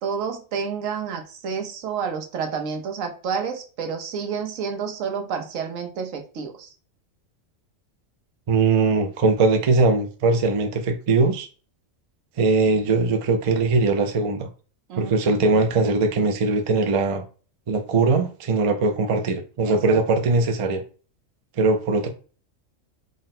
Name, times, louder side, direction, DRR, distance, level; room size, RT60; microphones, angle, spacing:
voice 1, 0.0-6.7 14.9-15.2 19.6-20.0, right 6 dB, 85° right, 1.1 m, -29 dB
voice 2, 8.5-11.5 12.4-14.5 15.0-17.2 17.7-20.8 21.6-22.1, right 3 dB, 50° right, 0.4 m, -20 dB
4.0 x 2.1 x 4.0 m
omnidirectional pair, 1.3 m